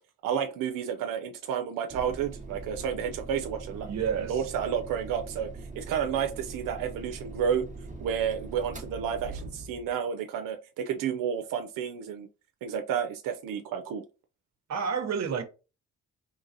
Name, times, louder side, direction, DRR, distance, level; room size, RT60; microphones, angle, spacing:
voice 1, 0.2-3.9 4.3-7.7 8.0-12.3 12.6-14.0, right 8 dB, 85° right, 0.5 m, -31 dB
sound 1, 1.9-9.9, right 3 dB, 25° right, 0.8 m, -42 dB
voice 2, 3.8-4.4 14.7-15.4, right 6 dB, 55° right, 0.8 m, -29 dB
3.8 x 3.3 x 2.6 m
cardioid pair, 95°, 32 cm